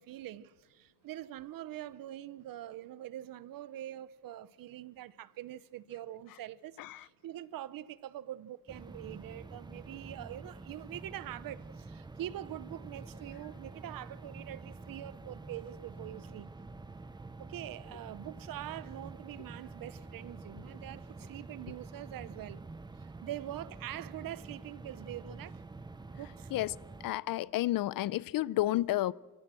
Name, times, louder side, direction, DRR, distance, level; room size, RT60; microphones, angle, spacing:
voice 1, 0.0-16.5 17.4-22.6 23.2-25.6 26.2-26.5, right 13 dB, 90° right, 0.9 m, -44 dB
sound 1, 8.7-27.1, right 3 dB, 15° right, 0.8 m, -48 dB
voice 2, 27.0-29.1, left 15 dB, 80° left, 0.6 m, -30 dB
27.5 x 17.0 x 7.6 m
wide cardioid pair, 170°, 33 cm